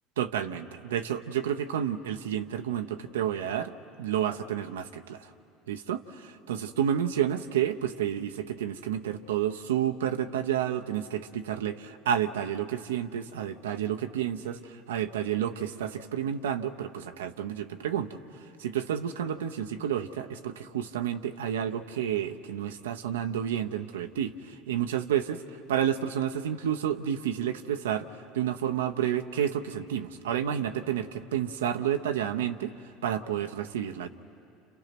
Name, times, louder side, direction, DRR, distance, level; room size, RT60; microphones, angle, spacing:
voice 1, 0.2-3.7 4.0-5.2 5.7-18.2 18.6-25.4 25.7-28.1 28.3-32.7 33.0-34.1, right 9 dB, 90° right, 7 dB, 0.8 m, -30 dB
30.0 x 28.5 x 6.1 m, 2.4 s
hypercardioid pair, 85°, 0 cm